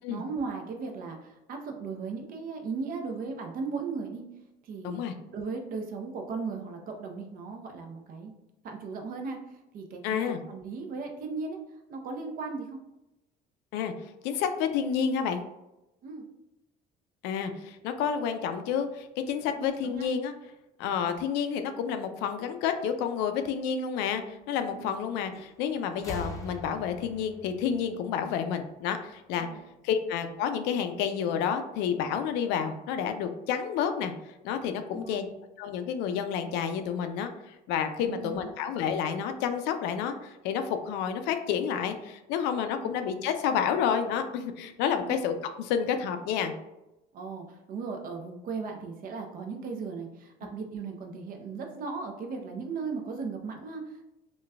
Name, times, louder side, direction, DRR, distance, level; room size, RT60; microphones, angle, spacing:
voice 1, 0.1-4.3 4.6-5.0 5.3-8.3 8.6-10.2 10.5-11.6 11.9-12.8 16.0-16.2 19.5-20.1 24.7-25.0 29.4-29.6 34.9-35.4 38.0-38.6 42.8-42.9 44.9-45.2 47.1-54.1, right 4 dB, 55° right, 4 dB, 0.6 m, -37 dB
voice 2, 10.0-10.4 13.7-13.9 14.2-15.4 17.2-20.3 20.8-29.5 29.8-34.1 34.4-35.3 35.6-46.5, left 7 dB, 85° left, 8 dB, 0.4 m, -30 dB
sound 1, 25.3-25.6 25.9-28.7 29.8-29.9, left 1 dB, 20° left, 0.6 m, -42 dB
3.8 x 2.2 x 2.3 m, 0.94 s
cardioid pair, 95°, 17 cm